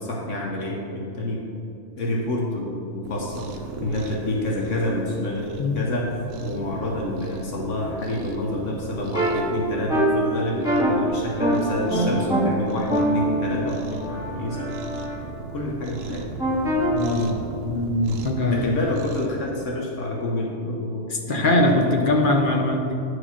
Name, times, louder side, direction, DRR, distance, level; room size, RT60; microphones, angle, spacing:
voice 1, 0.0-1.5 2.0-3.5 3.8-6.1 6.4-14.8 15.5-16.3 18.5-22.3, left 1 dB, 70° left, -1 dB, 1.3 m, -28 dB
Cat, 3.0-19.3, right 3 dB, 80° right, 1.1 m, -37 dB
sound 1, 9.1-9.3 9.9-10.1 10.6-10.9 11.4-11.6 11.9-12.4 12.9-15.1 16.4-16.9, right 1 dB, 5° right, 1.5 m, -24 dB
voice 2, 16.9-17.4 17.6-18.7 21.1-22.9, left 1 dB, 50° left, 2 dB, 0.7 m, -22 dB
9.8 x 4.8 x 5.8 m, 2.7 s
omnidirectional pair, 1.3 m